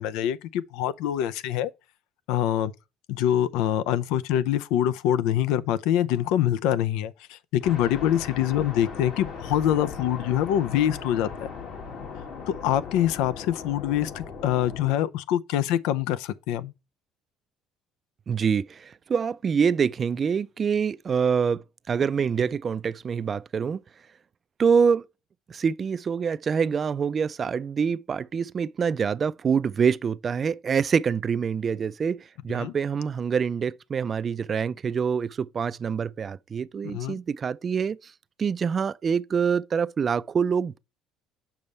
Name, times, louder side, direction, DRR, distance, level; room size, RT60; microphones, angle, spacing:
voice 1, 0.0-1.7 2.3-2.7 3.1-11.3 12.5-16.7 32.5-32.7 36.8-37.2, left 11 dB, 85° left, 0.5 m, -25 dB
sound 1, 7.6-14.9, left 5 dB, 65° left, 2.1 m, -38 dB
voice 2, 18.3-23.8 24.6-25.0 25.5-38.1 38.4-40.8, right 6 dB, 35° right, 0.3 m, -25 dB
7.0 x 5.3 x 3.2 m
cardioid pair, 110°, 0 cm